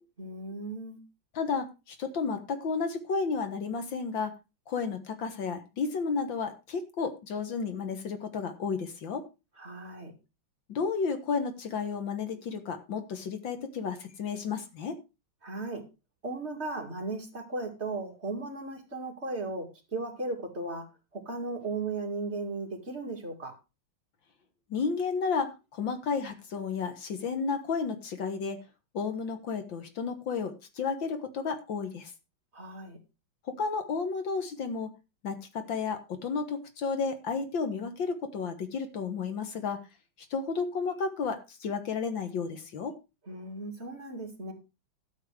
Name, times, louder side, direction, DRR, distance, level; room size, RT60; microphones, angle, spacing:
voice 1, 0.2-1.0 9.6-10.1 15.4-15.8 16.2-20.8 21.1-23.5 32.5-33.0 43.3-44.5, right 3 dB, 30° right, 2 dB, 2.7 m, -36 dB
voice 2, 1.3-4.3 4.7-9.3 10.7-15.0 24.7-28.6 28.9-32.1 33.5-34.9 35.2-39.8 40.3-43.0, left 5 dB, 65° left, 8 dB, 2.1 m, -32 dB
12.5 x 7.7 x 4.8 m, 0.28 s
omnidirectional pair, 2.3 m